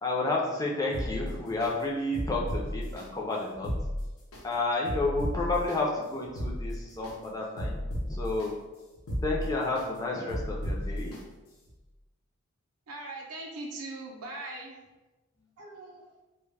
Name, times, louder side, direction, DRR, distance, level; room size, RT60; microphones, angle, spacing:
voice 1, 0.0-3.7 4.4-7.8 8.1-8.5 9.2-11.1, left 2 dB, 15° left, -3 dB, 0.3 m, -31 dB
sound 1, 0.9-1.7 2.1-3.0 3.5-4.4 4.9-5.8 6.2-7.1 7.6-8.5 8.9-9.9 10.3-11.2 11.7-11.8, equal, 75° left, 0.7 m, -33 dB
voice 2, 12.9-14.8 15.6-16.1, right 2 dB, 80° right, 0 dB, 0.4 m, -40 dB
2.1 x 2.0 x 3.2 m, 1.1 s
head